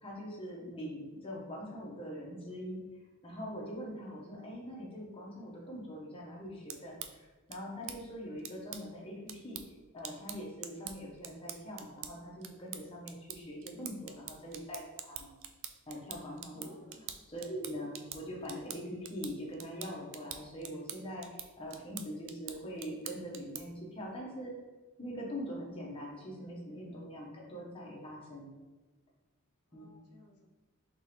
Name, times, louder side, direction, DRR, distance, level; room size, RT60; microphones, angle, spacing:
voice 1, 0.0-2.8 3.2-9.6 9.9-15.4 15.9-16.7 17.2-24.5 25.0-28.5 29.7-29.9, equal, 25° left, -3 dB, 0.9 m, -43 dB
voice 2, 3.9-4.4 13.6-13.9 16.3-17.3 17.6-17.9 26.8-27.1 29.7-30.5, left 2 dB, 85° left, 0 dB, 0.6 m, -60 dB
sound 1, 6.5-23.9, right 9 dB, 55° right, 0.3 m, -47 dB
3.7 x 3.7 x 3.0 m, 1.2 s
head